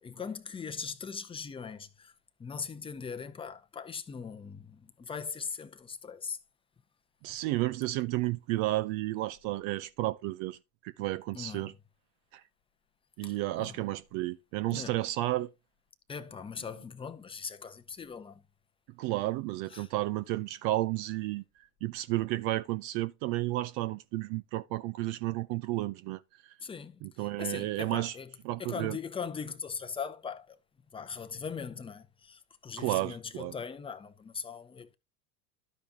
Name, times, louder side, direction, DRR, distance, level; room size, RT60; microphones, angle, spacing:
voice 1, 0.0-2.1 2.4-6.4 11.3-11.7 13.2-13.8 14.7-15.0 16.1-18.4 19.7-19.9 26.6-28.3 28.6-30.6 30.9-34.9, left 6 dB, 10° left, 0.7 m, -40 dB
voice 2, 7.2-10.6 10.8-11.7 12.3-12.4 13.2-15.5 19.0-21.4 21.8-26.5 27.0-28.2 28.4-29.0 32.8-33.5, right 17 dB, 45° right, 0.5 m, -32 dB
12.5 x 5.2 x 2.8 m
hypercardioid pair, 90°, 47 cm